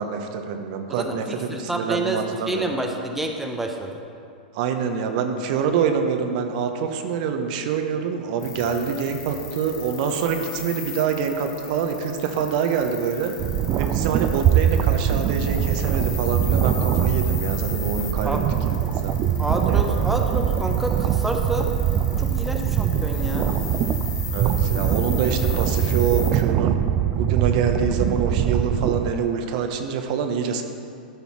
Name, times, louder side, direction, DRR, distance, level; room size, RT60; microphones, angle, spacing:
voice 1, 0.0-2.9 4.5-13.3 13.8-18.4 18.8-19.2 19.7-20.1 24.3-26.8 27.2-30.6, right 6 dB, 55° right, 5 dB, 0.9 m, -26 dB
voice 2, 0.9-4.0 18.2-18.4 19.4-21.7 22.2-23.5, right 1 dB, 5° right, 2 dB, 0.8 m, -28 dB
sound 1, 8.4-26.4, left 7 dB, 40° left, 1.6 m, -37 dB
sound 2, 13.4-29.1, right 9 dB, 35° right, 0.4 m, -22 dB
12.5 x 5.5 x 4.7 m, 2.5 s
hypercardioid pair, 110°, 5 cm